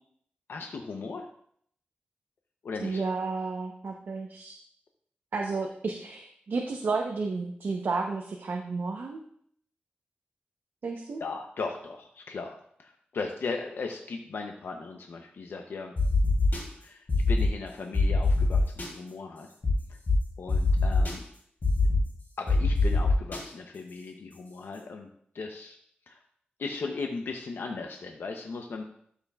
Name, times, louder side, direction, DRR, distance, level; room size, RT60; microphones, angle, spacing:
voice 1, 0.5-1.2 2.6-3.0 11.2-15.9 16.8-19.5 20.4-21.2 22.4-25.1 25.3-25.8 26.1-26.2 26.6-28.8, left 4 dB, 85° left, 3 dB, 0.6 m, -37 dB
voice 2, 2.8-4.6 5.3-9.2 10.8-11.2, right 4 dB, 70° right, 1 dB, 0.7 m, -32 dB
sound 1, 16.0-16.6 17.1-17.5 17.9-18.9 19.6-19.7 20.1-20.2 20.5-21.1 21.6-22.0 22.5-23.4, left 5 dB, 60° left, 2.8 m, -24 dB
12.5 x 5.7 x 2.3 m, 0.66 s
wide cardioid pair, 95°, 4 cm